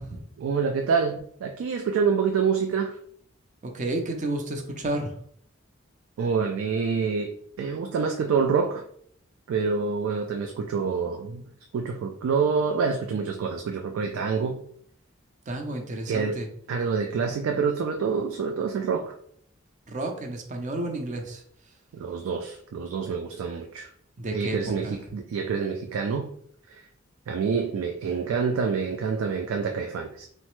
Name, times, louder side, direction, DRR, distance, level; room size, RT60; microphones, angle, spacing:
voice 1, 0.4-3.0 6.2-7.3 7.6-8.8 9.5-11.4 11.7-14.6 16.1-16.3 16.7-19.1 21.9-23.9 24.3-26.3 26.7-26.8 27.3-30.3, right 5 dB, 90° right, 4 dB, 0.3 m, -27 dB
voice 2, 3.6-5.1 15.5-16.5 19.9-21.4 24.2-24.9, right 2 dB, 40° right, 4 dB, 0.5 m, -31 dB
3.1 x 2.0 x 3.0 m, 0.64 s
head